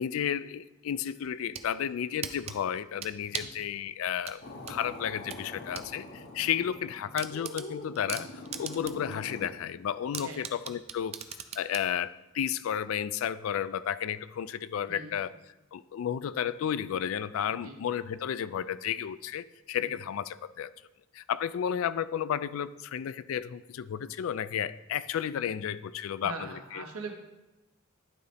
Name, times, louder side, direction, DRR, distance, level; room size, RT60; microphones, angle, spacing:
voice 1, 0.0-4.4 4.7-8.3 8.6-11.2 11.6-15.3 15.7-20.7 21.1-26.8, left 9 dB, 70° left, 16 dB, 0.3 m, -32 dB
sound 1, 1.2-1.7 2.2-3.6 4.2-5.9 6.3-6.4 6.7-6.8 7.2-9.1 9.5-9.6 10.1-11.9, right 8 dB, 30° right, 0.4 m, -39 dB
sound 2, 4.4-9.5, left 2 dB, 50° left, 0.8 m, -44 dB
voice 2, 26.2-27.1, right 3 dB, 80° right, 3 dB, 1.1 m, -42 dB
11.0 x 4.0 x 3.4 m, 0.99 s
head